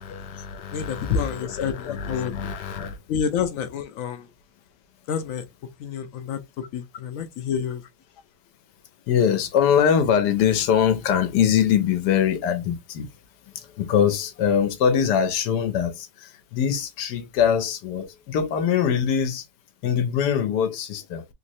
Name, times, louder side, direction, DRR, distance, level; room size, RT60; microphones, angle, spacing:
voice 1, 0.0-3.0 9.1-13.1 13.5-19.5 19.8-21.3, left 8 dB, 85° left, 1.3 m, -23 dB
voice 2, 0.7-2.3 3.1-4.3 5.1-5.5 5.8-6.4 6.7-7.8, left 7 dB, 70° left, 0.9 m, -28 dB
3.3 x 3.0 x 2.6 m
omnidirectional pair, 1.7 m